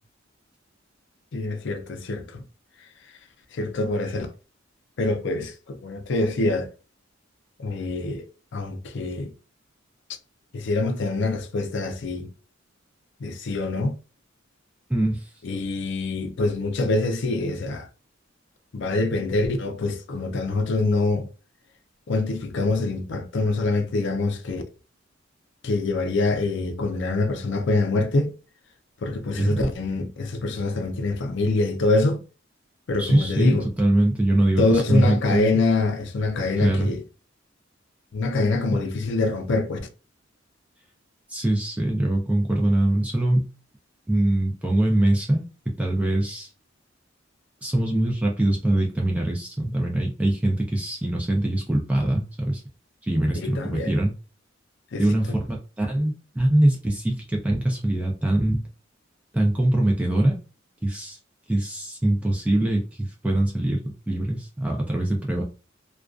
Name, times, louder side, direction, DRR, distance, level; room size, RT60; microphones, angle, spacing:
voice 1, 1.3-2.4 3.6-4.3 5.0-6.7 7.6-8.2 8.5-9.3 10.5-12.3 13.2-14.0 15.4-17.9 18.7-21.3 22.1-24.6 25.6-28.3 29.0-32.2 32.9-33.7 34.6-37.0 38.1-39.8 53.4-53.9 54.9-55.0, left 2 dB, 65° left, 0.5 m, -25 dB
voice 2, 14.9-15.3 29.4-29.7 33.0-35.6 36.6-36.9 38.7-38.8 41.3-43.5 44.1-46.5 47.6-52.6 53.0-54.1 55.0-58.6 59.3-60.3 60.8-61.2 61.5-65.4, right 1 dB, 5° right, 0.4 m, -23 dB
2.4 x 2.2 x 2.3 m
head